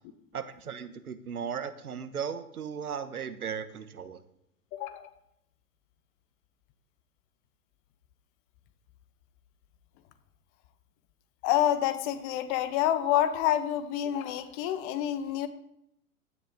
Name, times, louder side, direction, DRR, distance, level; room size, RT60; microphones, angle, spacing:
voice 1, 0.3-4.2, right 7 dB, 75° right, 11 dB, 1.2 m, -36 dB
voice 2, 4.7-5.1 11.4-15.5, left 11 dB, 35° left, 12 dB, 1.1 m, -28 dB
15.5 x 10.5 x 3.6 m, 0.77 s
figure-of-eight pair, 105°, 44 cm